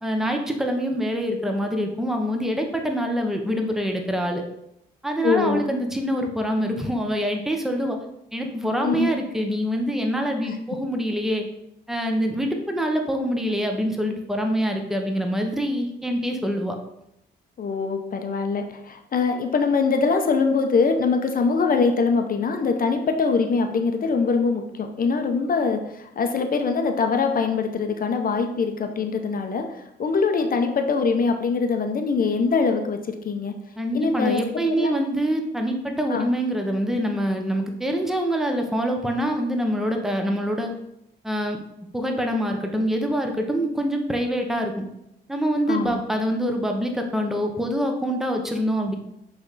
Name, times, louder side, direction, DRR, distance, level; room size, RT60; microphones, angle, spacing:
voice 1, 0.0-4.4 5.0-8.0 8.3-11.5 11.9-16.8 33.8-40.7 41.2-41.6 41.9-44.9 45.3-48.9, equal, ahead, 3 dB, 0.9 m, -25 dB
voice 2, 5.2-5.6 8.8-9.1 17.6-33.5 33.9-34.4 34.7-34.9 36.1-36.3 45.7-46.0, left 4 dB, 45° left, 5 dB, 0.8 m, -23 dB
7.7 x 3.4 x 4.1 m, 0.82 s
cardioid pair, 90°, 20 cm